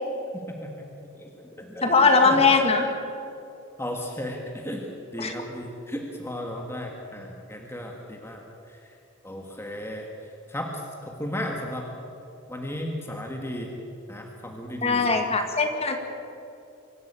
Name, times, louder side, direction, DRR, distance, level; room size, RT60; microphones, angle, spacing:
voice 1, 0.5-1.9 2.2-2.4 3.8-4.8 5.1-8.4 8.7-8.8 9.2-10.1 10.5-11.9 12.5-13.7 14.1-15.1, left 1 dB, 10° left, 1 dB, 1.7 m, -35 dB
voice 2, 1.8-2.9 5.2-5.3 14.8-16.0, left 4 dB, 30° left, 5 dB, 2.1 m, -20 dB
24.5 x 13.0 x 8.9 m, 2.7 s
head